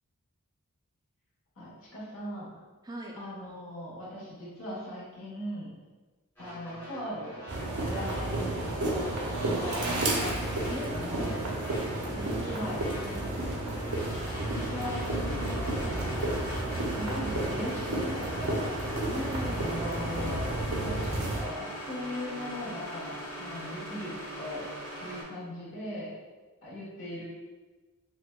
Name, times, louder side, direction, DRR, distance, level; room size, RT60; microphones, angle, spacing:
voice 1, 1.6-2.5 3.1-5.7 6.4-7.4 7.8-11.3 12.4-12.8 14.4-16.3 16.9-18.8 19.4-20.5 20.8-24.1 24.4-24.7 25.0-26.1 26.6-27.2, left 1 dB, 65° left, -7 dB, 1.1 m, -39 dB
sound 1, 6.4-25.2, equal, 10° left, 0.9 m, -41 dB
sound 2, 7.5-21.4, right 1 dB, 90° right, 0.6 m, -32 dB
voice 2, 10.7-11.3 11.6-12.6 13.0-13.7 19.1-19.6, right 1 dB, 15° right, -1 dB, 0.3 m, -40 dB
4.2 x 2.2 x 2.2 m, 1.3 s
head